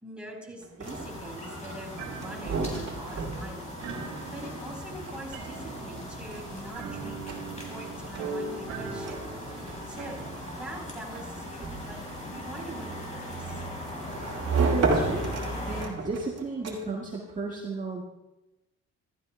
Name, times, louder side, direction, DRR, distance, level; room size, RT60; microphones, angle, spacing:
voice 1, 0.0-3.7 4.3-7.2 7.7-10.2 10.6-12.0 12.3-13.6, right 1 dB, 5° right, -1 dB, 4.0 m, -43 dB
sound 1, 0.6-17.1, right 4 dB, 55° right, 2.7 m, -35 dB
sound 2, 0.8-15.9, left 1 dB, 25° left, 4.9 m, -39 dB
sound 3, 2.0-10.3, right 4 dB, 85° right, 2.4 m, -40 dB
voice 2, 14.6-15.4 15.7-18.0, right 3 dB, 25° right, -3 dB, 1.7 m, -33 dB
14.5 x 14.0 x 2.2 m, 0.98 s
cardioid pair, 90°, 30 cm